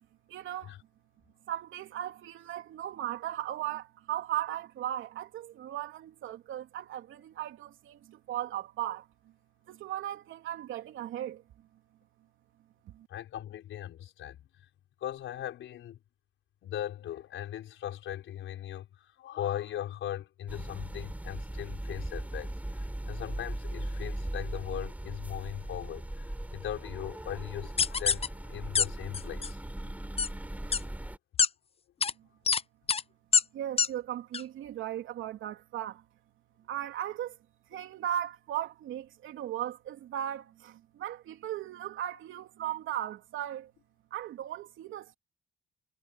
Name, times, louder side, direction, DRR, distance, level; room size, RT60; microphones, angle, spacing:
voice 1, 0.3-0.7 1.5-9.1 9.7-11.7 12.9-13.1 32.1-32.3 33.5-36.0 36.7-37.4 37.7-43.7 44.1-45.1, right 12 dB, 80° right, 3.2 m, -37 dB
voice 2, 13.1-14.4 15.0-16.0 16.6-22.5 23.1-29.6, left 11 dB, 80° left, 5.7 m, -39 dB
sound 1, 20.5-31.2, right 1 dB, 5° right, 4.3 m, -39 dB
sound 2, 27.8-28.3 28.8-28.9 29.1-29.5 30.2-30.3 30.7-30.8 31.4-31.5 32.0-32.1 32.5-32.6 32.9-33.0 33.3-33.4 33.8-33.9 34.3-34.4, left 6 dB, 30° left, 0.6 m, -24 dB
cardioid pair, 90°, 20 cm